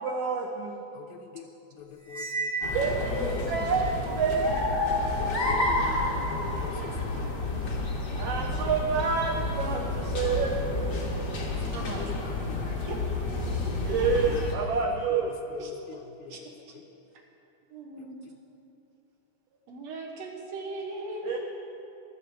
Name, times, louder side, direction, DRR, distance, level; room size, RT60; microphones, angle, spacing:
voice 1, 0.0-0.8 2.7-4.8 8.2-11.1 13.8-15.4 21.2-21.4, right 5 dB, 85° right, 3 dB, 1.3 m, -28 dB
voice 2, 1.0-1.5 1.8-2.7 5.2-6.0 6.8-7.3 12.5-12.8 15.9-16.0, left 9 dB, 80° left, 6 dB, 2.0 m, -45 dB
Cymbal, 2.1-3.5, right 3 dB, 10° right, 1.3 m, -34 dB
sound 1, 2.6-14.5, left 2 dB, 55° left, 0.9 m, -30 dB
voice 3, 11.7-12.2 12.9-13.0 13.6-13.7 15.6-15.7 16.3-16.8 17.7-18.3 19.7-21.4, right 2 dB, 65° right, 1 dB, 2.2 m, -39 dB
20.0 x 7.5 x 4.7 m, 2.8 s
omnidirectional pair, 3.6 m